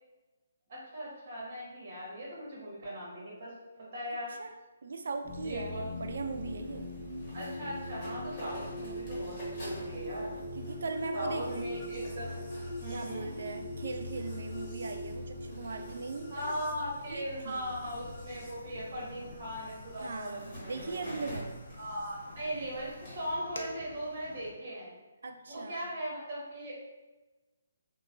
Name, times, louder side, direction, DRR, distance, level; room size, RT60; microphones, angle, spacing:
voice 1, 0.7-4.3 5.4-6.1 7.3-10.3 11.1-12.3 12.8-13.3 16.3-21.0 21.8-24.9 25.5-26.7, equal, 45° right, -5 dB, 1.2 m, -39 dB
voice 2, 4.8-5.7 6.0-6.9 10.5-11.9 12.9-16.6 17.1-17.7 20.0-21.6 25.2-25.9, right 3 dB, 70° right, 6 dB, 0.3 m, -39 dB
sound 1, 5.2-23.3, equal, 30° left, 1.1 m, -49 dB
sound 2, 5.2-20.3 21.5-22.1, equal, 10° left, 0.8 m, -42 dB
sound 3, 17.2-24.5, left 2 dB, 80° left, 0.4 m, -51 dB
2.9 x 2.2 x 2.5 m, 1.1 s
hypercardioid pair, 160°, 0 cm